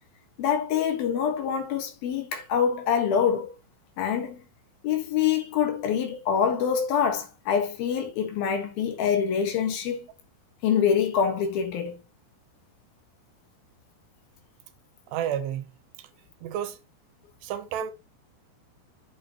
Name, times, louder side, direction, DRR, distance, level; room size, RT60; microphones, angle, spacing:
voice 1, 0.4-3.5 4.0-4.4 4.8-10.1 10.6-12.0, left 7 dB, 65° left, 3.0 m, -25 dB
voice 2, 15.1-15.7 16.0-16.1 16.4-16.8 17.4-17.9, right 10 dB, 75° right, 3.1 m, -31 dB
8.6 x 8.6 x 2.9 m
omnidirectional pair, 5.0 m